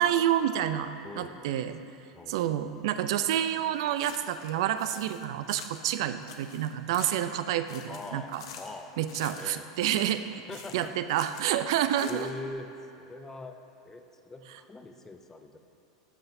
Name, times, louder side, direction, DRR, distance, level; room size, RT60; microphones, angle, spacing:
voice 1, 0.0-0.9 1.2-1.8 2.3-8.4 9.0-10.2 10.7-12.3, right 11 dB, 65° right, 11 dB, 0.4 m, -28 dB
voice 2, 1.0-1.4 2.1-2.9 7.9-8.3 8.6-8.9 9.4-9.7 10.5-10.9 12.0-12.7 13.0-13.5 13.8-15.6, left 3 dB, 15° left, 6 dB, 0.6 m, -42 dB
sound 1, 3.8-4.5 4.8-6.0 6.2-7.4 7.7-8.8 9.1-10.2 10.5-11.6 11.9-12.5, left 7 dB, 70° left, 0.6 m, -47 dB
13.0 x 5.6 x 2.7 m, 2.8 s
hypercardioid pair, 95°, 3 cm